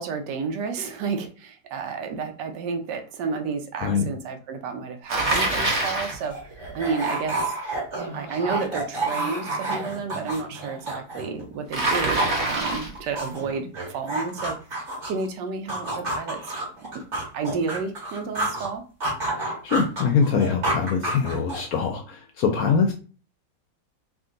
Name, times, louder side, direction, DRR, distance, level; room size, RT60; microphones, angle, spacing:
voice 1, 0.0-7.6 8.1-16.5 17.3-18.8, right 5 dB, 75° right, 6 dB, 1.2 m, -31 dB
Bicycle, 5.1-6.2 11.7-13.0, right 2 dB, 25° right, 0.8 m, -25 dB
sound 1, 6.0-11.5 11.7-15.3 15.7-18.7 19.0-21.8, right 2 dB, 40° right, 1.9 m, -30 dB
voice 2, 19.4-22.9, left 5 dB, 70° left, 4 dB, 0.9 m, -23 dB
3.7 x 2.5 x 3.7 m, 0.37 s
omnidirectional pair, 1.9 m